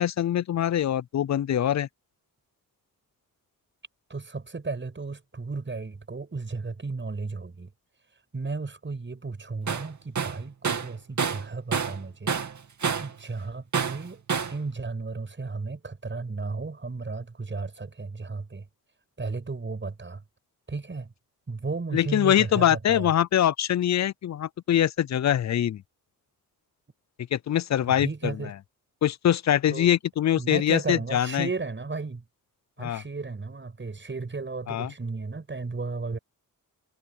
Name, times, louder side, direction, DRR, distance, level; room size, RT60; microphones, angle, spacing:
voice 1, 0.0-1.9 21.9-25.8 27.3-28.3 29.0-31.5 32.8-33.0 34.7-34.9, left 10 dB, 50° left, 0.5 m, -23 dB
voice 2, 4.1-7.7 8.3-12.4 13.0-14.2 14.5-18.7 19.2-20.2 20.7-21.1 21.5-23.1 27.9-28.5 29.7-29.9 30.4-32.2 32.8-36.2, right 3 dB, 30° right, 7.0 m, -34 dB
Tools, 9.7-9.9 10.2-12.0 12.3-13.2 13.7-14.6, right 6 dB, 55° right, 2.7 m, -28 dB
wide cardioid pair, 115°, 36 cm